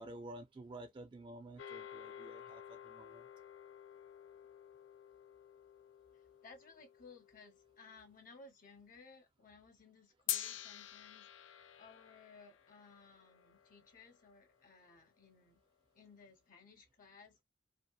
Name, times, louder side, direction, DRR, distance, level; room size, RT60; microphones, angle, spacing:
voice 1, 0.0-3.3, right 2 dB, 25° right, 0.3 m, -51 dB
sound 1, 1.6-8.1 10.3-14.7, left 11 dB, 80° left, 0.3 m, -48 dB
voice 2, 6.1-15.6 15.9-17.4, left 4 dB, 45° left, 0.7 m, -60 dB
2.8 x 2.1 x 2.2 m
head